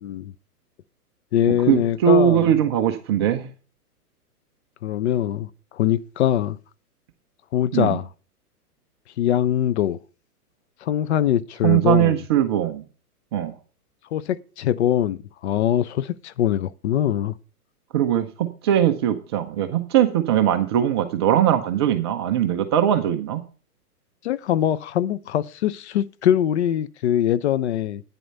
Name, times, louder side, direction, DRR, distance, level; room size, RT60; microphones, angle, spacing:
voice 1, 0.0-0.3 1.3-2.6 4.8-5.5 5.7-6.6 7.5-8.1 9.2-10.0 10.8-12.2 14.1-17.3 24.2-28.0, left 11 dB, 45° left, 0.7 m, -22 dB
voice 2, 1.7-3.5 7.7-8.0 11.6-12.8 13.3-13.5 17.9-23.4, right 10 dB, 20° right, 0.4 m, -20 dB
9.3 x 8.0 x 5.3 m
hypercardioid pair, 130°, 46 cm